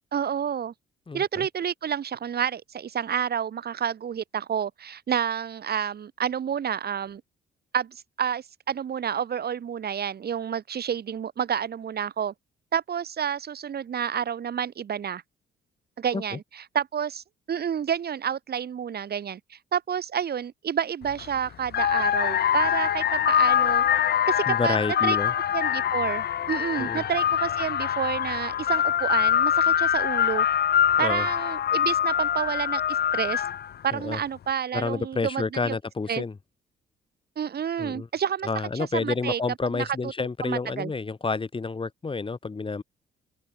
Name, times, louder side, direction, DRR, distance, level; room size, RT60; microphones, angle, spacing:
voice 1, 0.1-0.7 1.1-7.2 7.7-12.3 12.7-15.2 16.0-23.8 24.3-25.2 25.5-30.5 31.0-32.8 33.1-33.4 33.8-35.8 36.1-36.2 37.4-40.1 40.4-40.9, right 8 dB, 55° right, 2.4 m, -29 dB
voice 2, 1.1-1.5 16.1-16.4 24.5-25.3 26.8-27.1 31.0-31.3 33.9-34.2 34.7-36.3 37.8-38.1 38.4-42.8, left 4 dB, 25° left, 2.4 m, -29 dB
sound 1, 21.0-21.2 21.7-33.8, left 10 dB, 55° left, 0.8 m, -24 dB
open air
cardioid pair, 90°, 20 cm